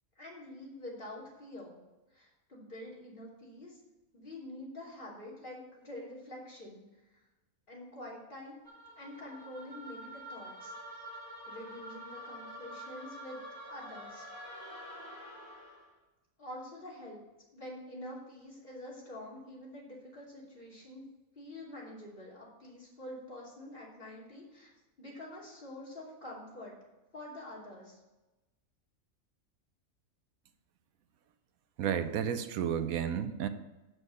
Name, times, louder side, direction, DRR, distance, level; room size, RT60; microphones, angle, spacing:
voice 1, 0.1-1.8 2.1-3.8 4.1-6.8 7.1-7.2 7.7-8.6 9.0-10.7 11.4-13.4 13.7-14.3 16.4-17.2 17.5-21.0 21.3-24.7 25.0-26.7 27.1-28.0, left 1 dB, 40° left, -5 dB, 3.1 m, -46 dB
sound 1, 8.6-15.9, equal, 25° right, 2.6 m, -47 dB
voice 2, 31.8-33.5, right 8 dB, 85° right, 10 dB, 1.1 m, -32 dB
7.7 x 6.3 x 6.4 m, 1.1 s
omnidirectional pair, 1.5 m